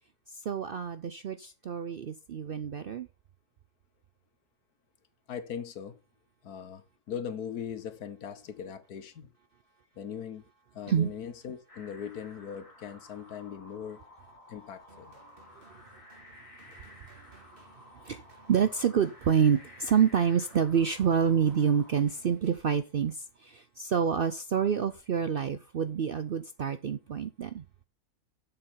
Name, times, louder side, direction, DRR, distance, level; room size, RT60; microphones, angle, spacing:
voice 1, 0.3-3.1 10.9-11.1 15.6-15.7 18.0-18.2 18.5-27.6, right 7 dB, 65° right, 0.5 m, -27 dB
voice 2, 5.3-6.0 6.4-9.3 10.0-10.4 10.7-14.0 14.5-15.1, left 8 dB, 85° left, 1.6 m, -40 dB
sound 1, 11.7-22.0, left 2 dB, 20° left, 2.4 m, -54 dB
sound 2, 14.9-23.3, right 2 dB, 35° right, 2.0 m, -59 dB
7.7 x 6.7 x 5.7 m
omnidirectional pair, 1.6 m